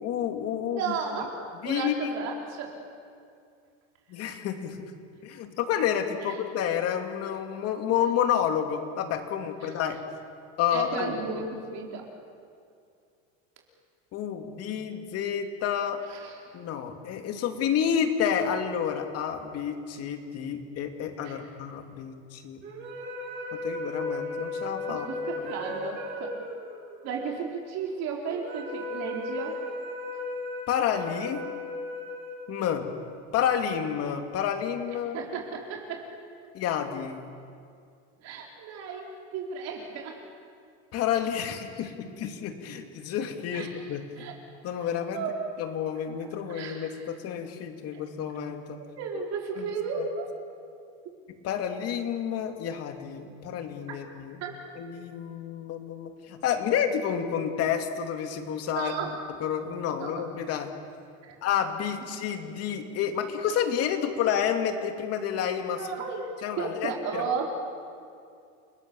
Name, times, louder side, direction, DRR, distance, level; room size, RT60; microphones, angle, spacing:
voice 1, 0.0-1.3 1.6-2.1 4.1-4.9 5.2-10.0 10.6-11.2 14.1-16.0 16.5-22.6 23.5-25.1 30.7-31.4 32.5-32.9 33.3-35.2 36.5-37.2 40.9-44.0 44.6-45.2 45.6-48.8 49.6-49.7 51.3-54.4 54.8-58.9 59.4-60.7 61.4-65.9 66.4-67.2, left 8 dB, 45° left, 6 dB, 2.6 m, -30 dB
voice 2, 0.7-1.3 1.6-2.8 6.2-6.3 10.7-12.1 16.1-16.4 21.2-21.4 24.9-26.4 27.0-29.6 35.1-36.1 38.2-40.2 43.5-44.3 44.8-45.5 46.0-46.1 46.5-47.0 47.9-48.0 48.8-50.3 54.4-54.5 58.7-59.2 60.0-60.2 61.3-61.4 65.8-66.3 66.6-67.6, right 5 dB, 45° right, 0 dB, 4.2 m, -34 dB
sound 1, 22.6-33.0, left 2 dB, 30° right, 6.9 m, -36 dB
30.0 x 20.0 x 7.1 m, 2.3 s
supercardioid pair, 150°, 35 cm